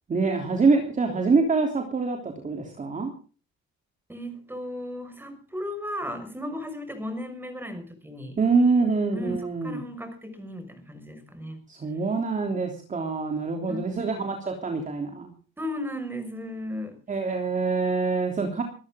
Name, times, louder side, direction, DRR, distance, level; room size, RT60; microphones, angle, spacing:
voice 1, 0.1-3.1 8.4-9.8 11.7-15.3 17.1-18.6, right 4 dB, 25° right, 3 dB, 3.3 m, -25 dB
voice 2, 4.1-8.4 9.1-11.6 13.7-14.1 15.6-17.0, left 1 dB, 5° right, 8 dB, 5.5 m, -35 dB
24.5 x 13.5 x 3.8 m, 0.39 s
cardioid pair, 145°, 31 cm